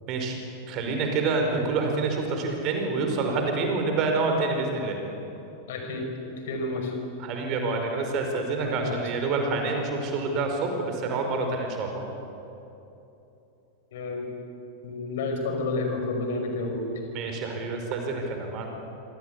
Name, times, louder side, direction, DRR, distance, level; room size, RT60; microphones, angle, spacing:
voice 1, 0.7-5.0 7.2-12.1 17.1-18.7, right 3 dB, 40° right, 3 dB, 5.2 m, -27 dB
voice 2, 5.7-6.9 8.6-9.1 13.9-14.4 14.8-16.9, left 3 dB, 55° left, 4 dB, 5.7 m, -30 dB
26.5 x 26.5 x 8.4 m, 3.0 s
figure-of-eight pair, 90°, 0 cm